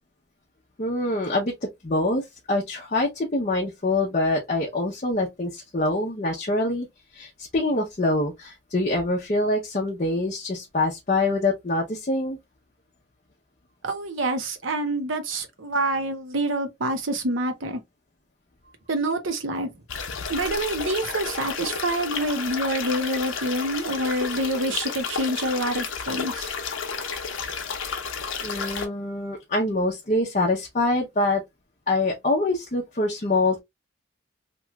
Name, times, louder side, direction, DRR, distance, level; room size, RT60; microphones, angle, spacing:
voice 1, 0.8-6.9 7.1-12.4 28.4-31.4 31.9-33.6, left 2 dB, 35° left, 0.6 m, -25 dB
voice 2, 13.8-17.8 18.9-19.7 20.3-26.5, right 1 dB, 75° right, 0.8 m, -27 dB
sound 1, 19.9-28.9, left 5 dB, 80° left, 0.7 m, -32 dB
2.9 x 2.3 x 2.9 m
head